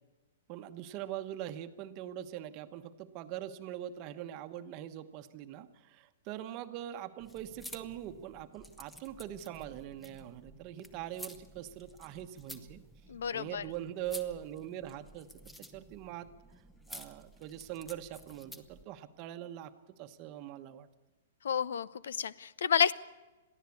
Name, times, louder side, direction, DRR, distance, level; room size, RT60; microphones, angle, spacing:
voice 1, 0.5-12.8 13.3-15.3 15.6-16.3 16.9-20.9, right 11 dB, 30° right, 9 dB, 1.1 m, -42 dB
sound 1, 7.2-18.8, left 1 dB, 5° left, 0.9 m, -52 dB
voice 2, 13.1-13.6 21.4-22.9, left 8 dB, 80° left, 20 dB, 0.7 m, -30 dB
22.5 x 14.5 x 8.5 m, 1.2 s
hypercardioid pair, 165°, 0 cm